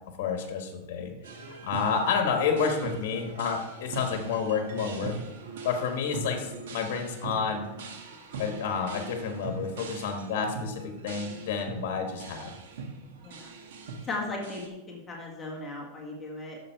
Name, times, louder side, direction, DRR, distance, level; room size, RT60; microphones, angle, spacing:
voice 1, 0.2-1.1 1.5-5.2 5.6-7.7 8.4-12.6, left 6 dB, 60° left, 3 dB, 1.3 m, -30 dB
sound 1, 1.2-14.7, right 4 dB, 80° right, 1.6 m, -41 dB
voice 2, 14.0-16.6, left 2 dB, 15° left, -2 dB, 1.6 m, -37 dB
8.4 x 7.0 x 4.6 m, 1.0 s
supercardioid pair, 150°, 0 cm